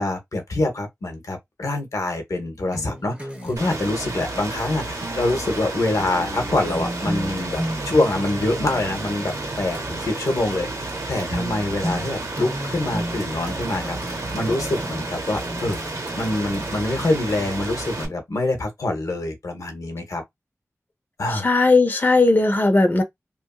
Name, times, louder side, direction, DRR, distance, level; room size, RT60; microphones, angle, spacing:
voice 1, 0.0-20.2 21.2-21.5, left 2 dB, 90° left, 0.8 m, -25 dB
sound 1, 2.7-17.5, equal, 20° right, 0.8 m, -35 dB
Rain, 3.6-18.1, right 2 dB, 75° right, 0.7 m, -31 dB
voice 2, 21.3-23.0, left 3 dB, 35° left, 0.7 m, -17 dB
2.8 x 2.5 x 2.3 m
wide cardioid pair, 85°, 5 cm